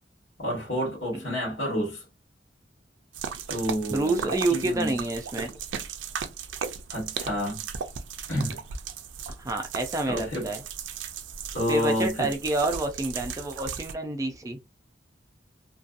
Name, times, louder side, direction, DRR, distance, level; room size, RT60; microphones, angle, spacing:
voice 1, 0.4-2.0 3.5-5.0 6.9-7.6 8.3-8.6 10.1-10.5 11.5-12.3, equal, 75° left, 1.4 m, -29 dB
sound 1, 3.1-13.9, right 7 dB, 90° right, 0.4 m, -36 dB
voice 2, 3.9-5.5 9.4-10.6 11.7-14.6, right 2 dB, 20° right, 0.3 m, -28 dB
2.6 x 2.2 x 2.4 m
head